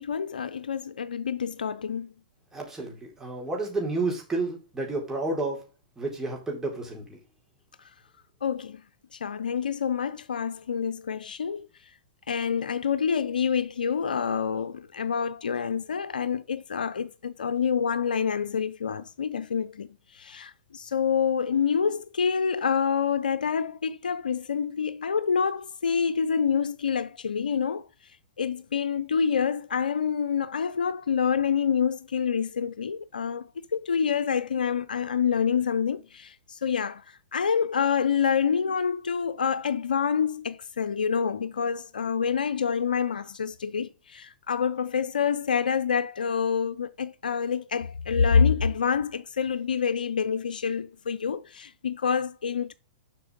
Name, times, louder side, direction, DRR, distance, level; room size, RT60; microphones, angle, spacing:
voice 1, 0.0-2.1 8.4-8.8 9.1-11.7 12.3-28.1 28.4-52.7, left 6 dB, 85° left, 0.5 m, -27 dB
voice 2, 2.5-5.6 6.0-7.2, right 2 dB, 10° right, 4.3 m, -31 dB
7.7 x 5.9 x 5.1 m
hypercardioid pair, 115°, 5 cm